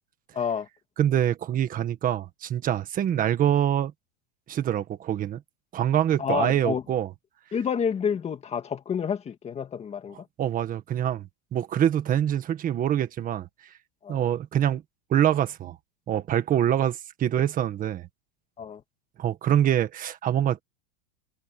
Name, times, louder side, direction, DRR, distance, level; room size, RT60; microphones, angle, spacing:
voice 1, 0.3-0.7 6.2-6.8 7.5-10.3 14.0-14.2 18.6-18.8, left 7 dB, 15° left, 2.3 m, -29 dB
voice 2, 1.0-3.9 4.5-5.4 5.7-7.1 10.4-13.5 14.1-14.8 15.1-15.8 16.1-18.1 19.2-20.6, right 10 dB, 20° right, 1.6 m, -25 dB
supercardioid pair, 170°, 41 cm